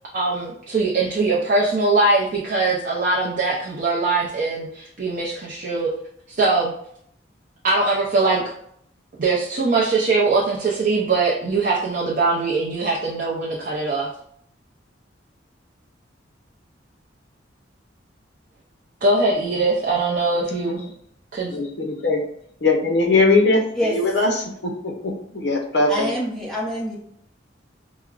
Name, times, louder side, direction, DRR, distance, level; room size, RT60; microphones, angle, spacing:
voice 1, 0.1-5.9 6.3-6.7 7.6-8.4 9.2-14.1 19.0-20.9 21.3-21.6, right 3 dB, 45° right, -3 dB, 0.5 m, -21 dB
voice 2, 21.5-22.2 22.6-23.6 23.9-24.9 25.3-26.1, left 3 dB, 60° left, 1 dB, 0.7 m, -20 dB
voice 3, 25.9-27.0, equal, 5° left, -5 dB, 0.7 m, -25 dB
4.6 x 2.0 x 2.3 m, 0.68 s
head